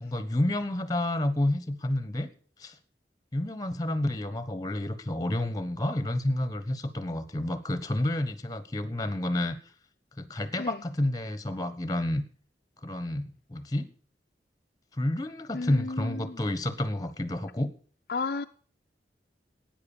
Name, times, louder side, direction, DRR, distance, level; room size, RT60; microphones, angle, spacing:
voice 1, 0.0-2.3 2.6-2.8 3.3-9.6 10.2-12.2 12.8-13.9 14.9-17.7, left 1 dB, 20° left, 1.1 m, -30 dB
voice 2, 15.5-16.4 18.1-18.5, left 3 dB, 60° left, 0.5 m, -33 dB
12.5 x 9.2 x 7.1 m
head